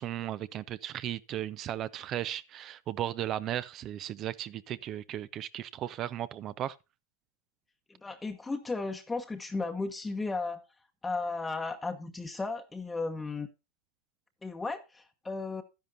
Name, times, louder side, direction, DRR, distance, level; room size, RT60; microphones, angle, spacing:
voice 1, 0.0-6.8, right 12 dB, 40° right, 0.6 m, -36 dB
voice 2, 8.0-10.6 11.0-13.5 14.4-15.6, left 3 dB, 10° left, 1.0 m, -35 dB
12.0 x 10.5 x 2.6 m
hypercardioid pair, 115°, 0 cm